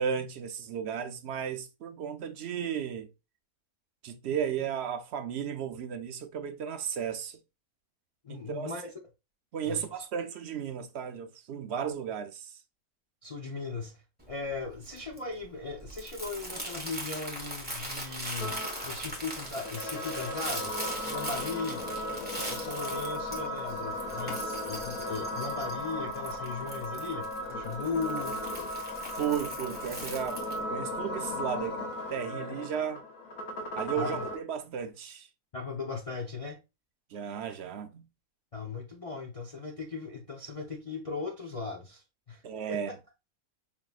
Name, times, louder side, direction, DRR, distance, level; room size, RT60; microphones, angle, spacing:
voice 1, 0.0-3.1 4.0-7.4 8.3-8.7 9.5-12.6 29.1-30.4 30.7-33.0 33.8-35.3 37.1-38.0 42.4-42.9, right 8 dB, 60° right, 0.7 m, -34 dB
voice 2, 8.2-8.9 9.6-9.9 13.2-20.8 21.1-21.8 22.3-28.4 33.9-34.3 35.5-36.6 38.5-42.4 42.7-42.8, left 4 dB, 45° left, 0.5 m, -38 dB
Crumpling crinkling, 14.2-30.6, right 1 dB, 5° right, 1.2 m, -41 dB
sound 1, 18.4-34.4, left 1 dB, 90° left, 1.6 m, -36 dB
5.4 x 2.9 x 2.3 m
omnidirectional pair, 1.5 m